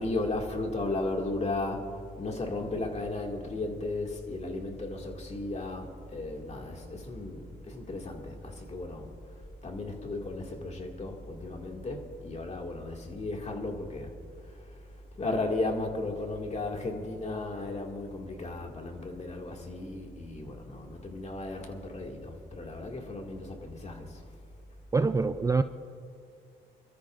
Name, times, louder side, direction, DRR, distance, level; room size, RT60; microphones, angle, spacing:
voice 1, 0.0-14.2 14.4-24.4, left 2 dB, 35° left, 2.2 m, -35 dB
voice 2, 24.9-25.6, right 4 dB, 15° right, 0.3 m, -25 dB
27.0 x 13.5 x 2.5 m
cardioid pair, 90°, 20 cm